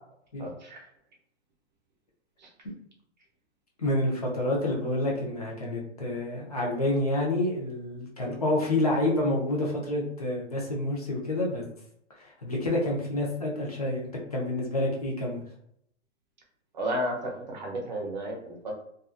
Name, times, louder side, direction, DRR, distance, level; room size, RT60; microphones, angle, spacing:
voice 1, 0.4-0.8 2.4-2.5 16.7-18.7, equal, 35° right, -1 dB, 0.7 m, -33 dB
voice 2, 3.8-11.7 12.1-15.4, left 1 dB, 30° left, -2 dB, 0.5 m, -28 dB
2.6 x 2.4 x 2.4 m, 0.71 s
hypercardioid pair, 175°, 37 cm